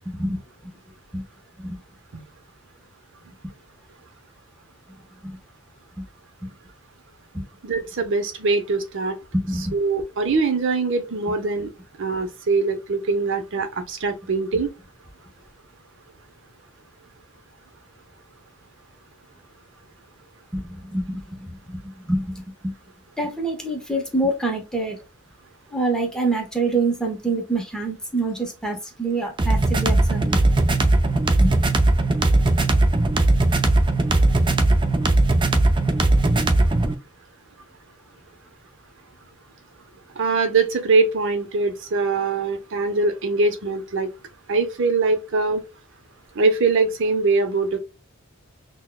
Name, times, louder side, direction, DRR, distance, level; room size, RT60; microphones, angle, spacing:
voice 1, 0.1-0.4 1.1-1.2 1.6-1.8 5.2-5.4 6.0-6.1 6.4-6.5 7.3-7.4 9.3-9.8 20.5-22.7 23.2-25.0 25.7-30.4 31.3-31.7, right 2 dB, 5° left, 0.8 m, -26 dB
voice 2, 7.6-9.1 9.7-11.7 12.0-14.7 40.2-44.1 44.5-45.6 46.4-47.8, right 3 dB, 60° right, 0.7 m, -22 dB
sound 1, 29.4-36.9, right 2 dB, 20° right, 0.4 m, -18 dB
6.1 x 2.2 x 2.2 m
head